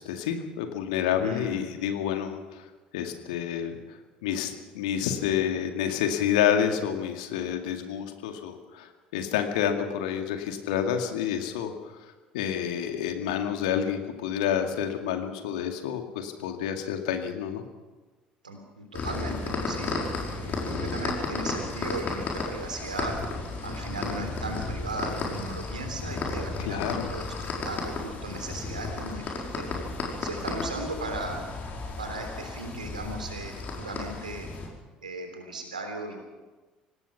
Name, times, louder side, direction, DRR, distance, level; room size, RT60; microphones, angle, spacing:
voice 1, 0.0-2.7 2.9-11.7 12.3-17.6 26.6-27.1, left 9 dB, 70° left, 5 dB, 2.2 m, -29 dB
voice 2, 1.2-1.6 18.4-20.0 20.2-23.2 23.6-29.7 30.2-31.4 32.0-34.5 35.0-36.2, right 2 dB, 85° right, 4 dB, 3.4 m, -37 dB
sound 1, 18.9-34.7, left 3 dB, 45° left, 5.5 m, -33 dB
25.0 x 18.5 x 5.8 m, 1.3 s
figure-of-eight pair, 60°, 4 cm